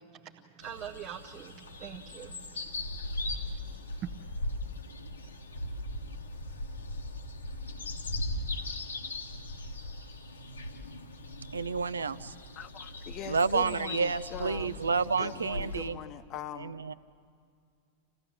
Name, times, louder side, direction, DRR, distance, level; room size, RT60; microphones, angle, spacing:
voice 1, 0.0-4.1, right 9 dB, 35° right, 0.8 m, -45 dB
sound 1, 0.6-15.9, left 1 dB, 75° left, 1.2 m, -39 dB
voice 2, 11.5-12.3 13.3-16.0 16.6-16.9, right 5 dB, 75° right, 0.5 m, -30 dB
voice 3, 12.6-14.8 15.2-16.8, left 10 dB, 35° left, 0.9 m, -42 dB
27.0 x 16.0 x 7.7 m
figure-of-eight pair, 90°, 0 cm